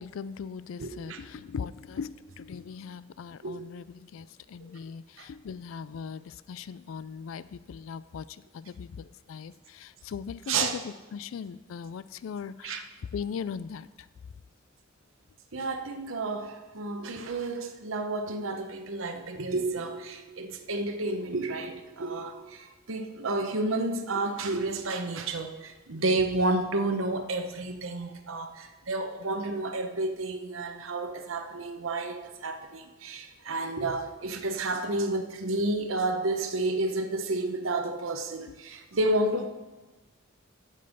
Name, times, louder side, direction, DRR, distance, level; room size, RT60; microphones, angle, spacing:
voice 1, 0.0-13.9, left 6 dB, 85° left, 0.4 m, -39 dB
voice 2, 0.8-1.2 3.4-3.6 5.2-5.3 10.5-10.8 12.6-12.8 15.5-39.5, right 2 dB, 85° right, 0.9 m, -31 dB
14.5 x 5.4 x 5.3 m
head